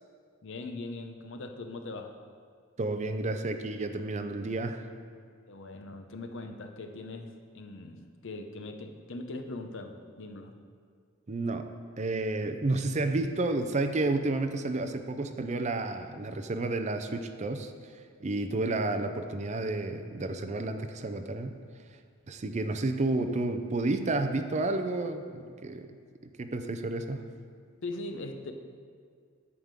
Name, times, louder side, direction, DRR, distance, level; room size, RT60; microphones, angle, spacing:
voice 1, 0.4-2.1 5.5-10.5 27.8-28.5, left 2 dB, 60° left, 5 dB, 0.7 m, -40 dB
voice 2, 2.8-4.9 11.3-11.7 12.0-17.7 18.2-21.6 22.3-26.0 26.4-27.3, right 2 dB, 35° right, 7 dB, 0.5 m, -31 dB
11.0 x 3.6 x 7.4 m, 2.1 s
head